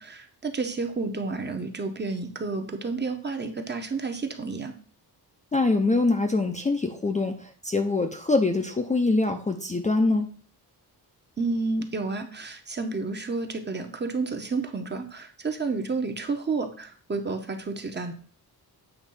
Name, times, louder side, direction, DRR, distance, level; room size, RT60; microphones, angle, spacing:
voice 1, 0.0-4.7 11.4-18.1, right 3 dB, 25° right, 4 dB, 0.9 m, -30 dB
voice 2, 5.5-10.3, left 3 dB, 20° left, 4 dB, 0.5 m, -24 dB
8.1 x 3.2 x 5.5 m, 0.43 s
wide cardioid pair, 145°, 41 cm